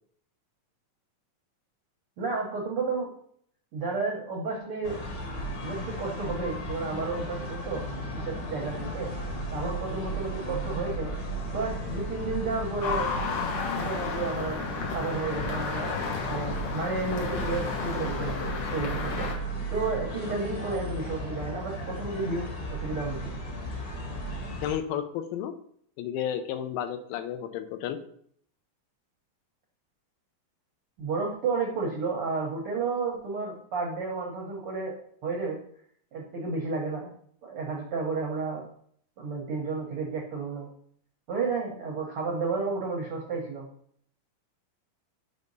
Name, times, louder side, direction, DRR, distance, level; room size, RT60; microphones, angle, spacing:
voice 1, 2.2-3.1 3.7-5.0 5.6-9.1 9.5-11.1 11.5-13.1 13.7-14.6 14.9-16.0 16.3-19.3 19.7-23.4 31.0-35.0 35.2-35.6 36.1-37.1 37.4-38.6 39.2-40.7 41.3-43.7, right 4 dB, 80° right, -1 dB, 1.2 m, -32 dB
sound 1, 4.8-24.8, equal, 45° left, 1.9 m, -35 dB
sound 2, 12.8-19.4, left 4 dB, 70° left, 2.6 m, -32 dB
voice 2, 24.6-25.5 26.0-28.0, left 10 dB, 85° left, 8 dB, 2.5 m, -32 dB
6.0 x 5.3 x 4.0 m, 0.62 s
omnidirectional pair, 4.2 m